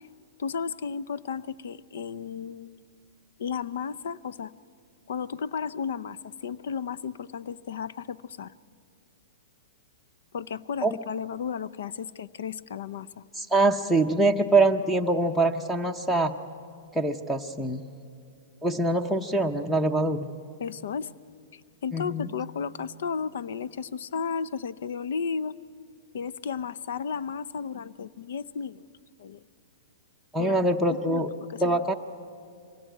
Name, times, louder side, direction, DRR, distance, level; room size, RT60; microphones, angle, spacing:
voice 1, 0.4-2.8 3.4-4.5 5.1-8.5 10.3-13.2 20.6-21.1 21.5-25.6 26.1-28.8 29.2-29.4 30.4-31.2 31.5-31.8, left 6 dB, 75° left, 21 dB, 0.6 m, -34 dB
voice 2, 13.4-16.3 16.9-17.8 18.6-20.3 21.9-22.3 30.3-31.3 31.6-31.9, right 2 dB, 5° left, 10 dB, 0.8 m, -24 dB
24.0 x 17.5 x 9.2 m, 2.3 s
hypercardioid pair, 145°, 0 cm